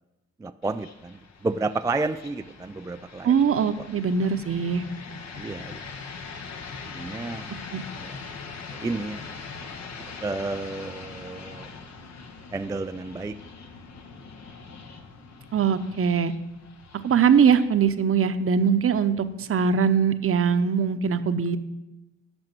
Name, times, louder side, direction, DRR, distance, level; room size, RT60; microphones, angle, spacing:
voice 1, 0.4-3.4 3.8-3.9 5.4-5.8 6.8-7.5 8.0-8.2 8.7-9.4 10.0-11.7 12.5-13.4, right 3 dB, 10° right, 9 dB, 0.3 m, -31 dB
sound 1, 0.6-19.6, left 5 dB, 60° left, 1.4 m, -42 dB
voice 2, 3.2-4.8 7.7-7.8 15.5-16.3 17.0-21.6, right 6 dB, 45° right, 11 dB, 0.9 m, -22 dB
11.0 x 6.2 x 9.1 m, 1.0 s
cardioid pair, 90°, 30 cm